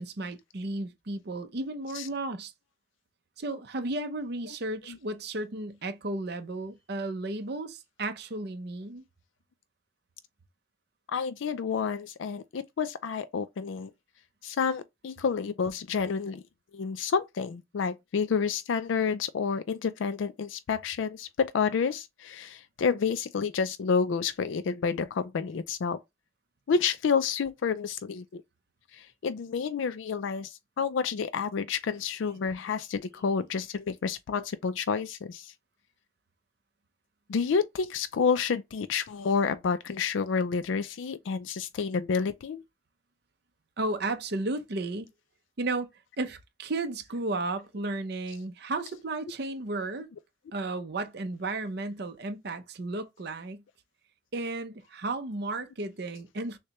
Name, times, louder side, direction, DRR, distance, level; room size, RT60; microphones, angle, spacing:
voice 1, 0.0-2.5 3.4-9.0 43.8-45.1 45.6-45.9 46.2-50.1 50.5-53.6 54.3-56.6, right 2 dB, 55° right, 0.7 m, -34 dB
voice 2, 11.1-13.9 14.4-16.4 16.7-26.0 26.7-28.4 28.9-35.5 37.3-42.6, left 5 dB, 85° left, 0.4 m, -29 dB
6.4 x 2.2 x 2.9 m
head